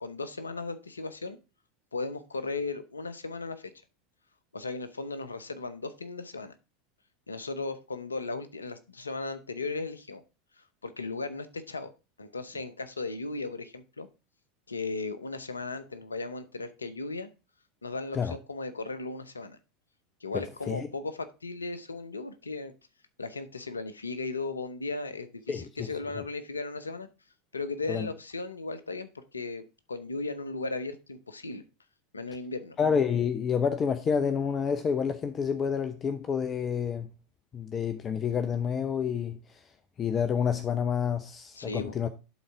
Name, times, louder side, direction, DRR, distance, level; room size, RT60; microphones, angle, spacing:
voice 1, 0.0-1.4 1.9-3.7 4.5-6.5 7.3-10.2 10.6-11.9 12.2-14.1 14.7-17.3 17.8-19.6 20.2-22.7 23.2-27.1 27.5-29.6 29.9-31.6 32.1-32.8 41.5-41.9, left 3 dB, 90° left, 0.8 m, -36 dB
voice 2, 32.8-37.1 37.5-39.6 40.0-42.1, left 7 dB, 30° left, 0.8 m, -28 dB
11.5 x 4.1 x 4.6 m
hypercardioid pair, 85°, 0 cm